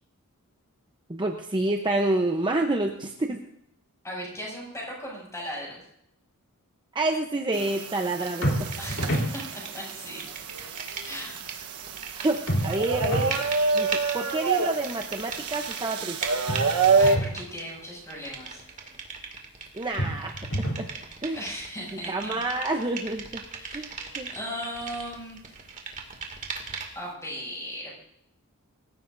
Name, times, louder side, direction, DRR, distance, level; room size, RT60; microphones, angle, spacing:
voice 1, 1.1-3.4 6.9-8.7 12.2-13.5 13.7-13.9 14.1-16.2 19.7-20.9 21.2-21.4 22.1-23.4 23.7-23.9 24.2-24.3, right 2 dB, 20° right, 3 dB, 0.9 m, -28 dB
voice 2, 4.0-5.8 8.8-10.3 11.0-11.4 17.0-18.6 21.3-22.4 23.6-24.0 24.3-25.4 26.9-27.9, equal, 15° left, -4 dB, 7.3 m, -37 dB
sound 1, 7.5-17.2, right 4 dB, 85° right, 1.2 m, -28 dB
sound 2, 8.4-9.3 12.5-13.4 16.5-17.4 20.0-20.9, equal, 60° left, 3.8 m, -28 dB
sound 3, 8.4-9.8 10.1-27.1, right 5 dB, 35° right, 2.4 m, -39 dB
25.0 x 15.5 x 2.7 m, 0.78 s
head